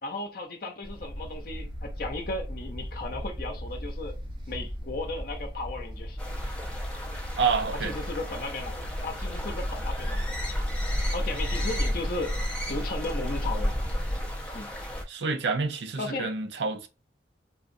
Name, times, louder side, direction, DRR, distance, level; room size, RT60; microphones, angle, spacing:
voice 1, 0.0-4.2 4.5-6.2 7.8-8.8 9.0-10.3 11.1-12.4 12.7-13.7 14.5-14.7 16.0-16.3, left 2 dB, 50° left, 0.7 m, -35 dB
sound 1, 0.8-11.8, equal, 25° right, 1.2 m, -38 dB
Yorkies Crossing with Kestrel, 6.2-15.0, equal, 5° left, 0.6 m, -32 dB
voice 2, 7.4-8.0 11.3-11.7 15.1-16.9, right 5 dB, 70° right, 0.6 m, -28 dB
3.9 x 2.4 x 2.6 m
head